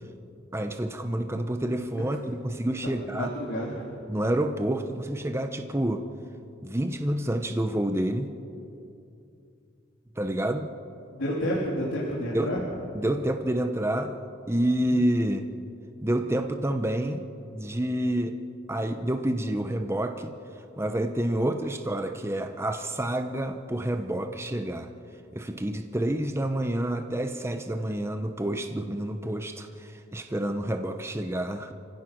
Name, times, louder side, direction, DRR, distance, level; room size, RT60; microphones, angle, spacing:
voice 1, 0.5-3.3 4.1-6.0 6.6-8.3 10.2-10.7 12.3-12.5 12.9-14.2 14.5-15.5 16.0-17.3 17.5-18.4 18.7-20.3 20.8-24.9 25.3-31.7, right 1 dB, 15° right, 6 dB, 0.8 m, -28 dB
voice 2, 3.1-3.9 11.1-12.6, equal, 90° left, -5 dB, 3.4 m, -29 dB
28.0 x 16.0 x 6.1 m, 2.7 s
head